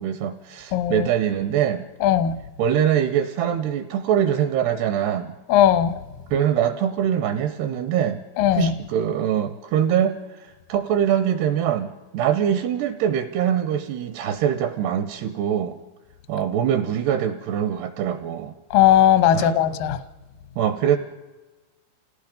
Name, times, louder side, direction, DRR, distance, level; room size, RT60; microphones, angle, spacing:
voice 1, 0.0-1.9 2.6-5.4 6.3-8.2 8.5-15.8 16.3-18.5 19.3-19.6 20.6-21.0, right 9 dB, 80° right, 10 dB, 2.6 m, -23 dB
voice 2, 0.7-1.1 2.0-2.4 5.5-5.9 8.4-8.7 18.7-20.0, left 10 dB, 80° left, 11 dB, 1.9 m, -17 dB
28.5 x 18.5 x 5.2 m, 1.2 s
omnidirectional pair, 5.3 m